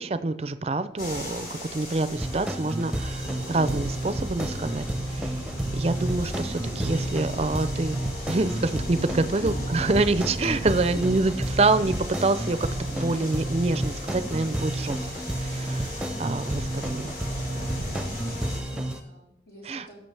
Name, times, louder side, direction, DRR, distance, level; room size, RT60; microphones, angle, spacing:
voice 1, 0.0-4.9 5.1-5.3 5.7-8.0 8.3-15.0 15.4-17.2 19.7-20.0, right 3 dB, 35° right, 12 dB, 0.5 m, -26 dB
sound 1, 1.0-18.6, equal, 50° left, 3.1 m, -37 dB
sound 2, 2.2-19.0, right 1 dB, 5° right, 0.7 m, -31 dB
voice 2, 9.2-9.7 10.6-11.2 18.6-20.0, left 1 dB, 65° left, -4 dB, 3.8 m, -45 dB
16.5 x 6.7 x 3.4 m, 0.82 s
head